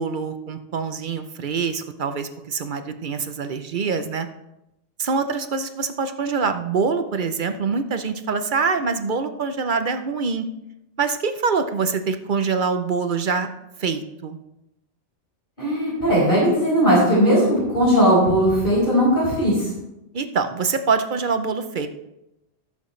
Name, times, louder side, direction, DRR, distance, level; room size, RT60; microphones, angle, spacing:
voice 1, 0.0-4.3 5.0-10.5 11.0-13.5 13.8-14.4 20.1-21.9, right 5 dB, 50° right, 9 dB, 0.7 m, -24 dB
voice 2, 15.6-19.7, equal, 50° left, -7 dB, 4.8 m, -18 dB
14.5 x 7.3 x 3.2 m, 0.88 s
omnidirectional pair, 1.2 m